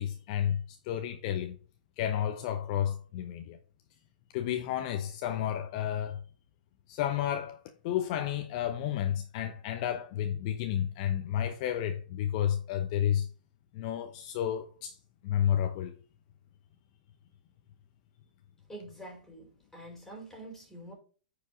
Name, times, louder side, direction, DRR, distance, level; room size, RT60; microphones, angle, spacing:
voice 1, 0.0-1.6 2.0-3.6 4.3-6.2 6.9-7.6 7.8-13.3 13.7-14.9 15.2-15.9, left 10 dB, 45° left, 0.9 m, -31 dB
voice 2, 18.7-20.9, right 1 dB, 5° left, 4.7 m, -46 dB
9.6 x 5.1 x 3.8 m
hypercardioid pair, 120°, 5 cm